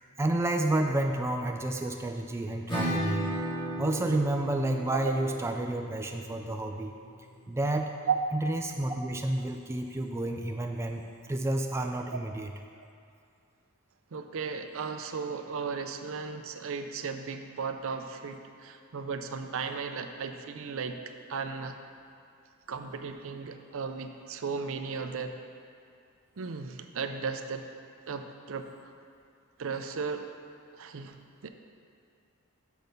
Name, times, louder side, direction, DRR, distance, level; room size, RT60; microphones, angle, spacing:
voice 1, 0.2-3.3 3.8-6.9 7.5-7.9 8.3-12.5, right 1 dB, 10° right, 3 dB, 0.3 m, -30 dB
Acoustic guitar / Strum, 2.7-8.1, right 1 dB, 25° left, 1.7 m, -36 dB
voice 2, 14.1-21.0 21.3-21.7 22.7-25.4 26.4-27.7 28.1-28.7 29.6-30.3 30.7-31.2 31.4-31.5, right 5 dB, 65° right, 7 dB, 0.5 m, -35 dB
6.8 x 6.1 x 5.2 m, 2.4 s
head